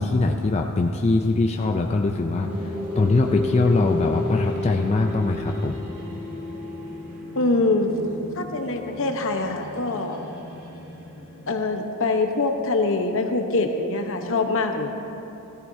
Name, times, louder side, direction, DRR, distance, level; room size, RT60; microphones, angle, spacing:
voice 1, 0.0-5.8, left 2 dB, 30° left, 3 dB, 0.4 m, -22 dB
sound 1, 2.3-11.6, left 2 dB, 40° right, 2.5 m, -33 dB
voice 2, 7.3-7.9 8.4-10.3 11.5-14.9, left 3 dB, 60° left, 4 dB, 1.0 m, -24 dB
17.0 x 14.0 x 2.7 m, 2.9 s
head